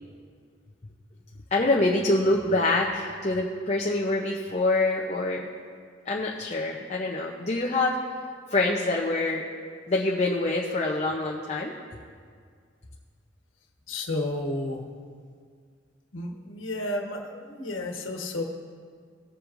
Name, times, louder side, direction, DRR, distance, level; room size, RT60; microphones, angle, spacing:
voice 1, 1.5-5.5 6.1-8.0 8.5-9.4 9.9-11.7, left 2 dB, 35° left, -2 dB, 0.7 m, -25 dB
voice 2, 13.9-14.8 16.1-18.4, left 2 dB, 90° left, 1 dB, 1.3 m, -32 dB
18.5 x 7.5 x 2.6 m, 2.1 s
head